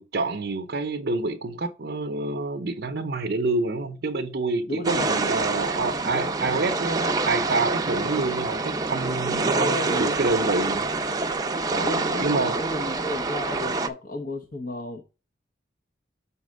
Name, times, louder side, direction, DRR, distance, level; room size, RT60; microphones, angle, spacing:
voice 1, 0.0-10.9 11.7-11.9 12.2-12.6, right 3 dB, 60° right, 0.6 m, -27 dB
voice 2, 4.7-5.1 9.6-10.2 11.8-15.0, left 1 dB, 50° left, 0.9 m, -32 dB
sound 1, 4.8-13.9, right 3 dB, 20° right, 0.5 m, -26 dB
5.8 x 4.2 x 6.3 m
head